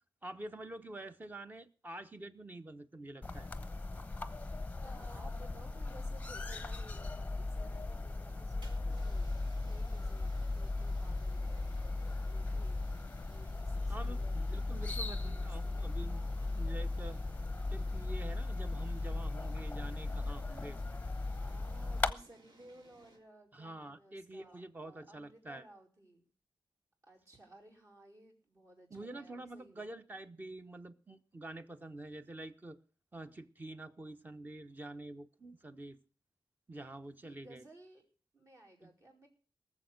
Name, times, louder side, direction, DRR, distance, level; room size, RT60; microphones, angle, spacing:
voice 1, 0.2-3.5 13.9-16.2 16.6-17.2 17.7-20.8 23.5-25.6 28.9-32.8 33.1-36.0 36.7-37.6 38.8-38.9, right 2 dB, 20° right, 1.0 m, -47 dB
sound 1, 3.2-22.1, left 2 dB, 20° left, 0.8 m, -37 dB
voice 2, 4.8-9.3 9.6-11.8 12.2-12.8 13.2-14.3 14.8-15.9 21.4-26.3 27.0-29.9 37.2-38.0 38.3-39.3, right 1 dB, 45° right, 4.9 m, -58 dB
sound 2, 8.3-23.2, right 2 dB, 70° right, 3.3 m, -63 dB
18.5 x 7.3 x 6.6 m
wide cardioid pair, 110°, 8 cm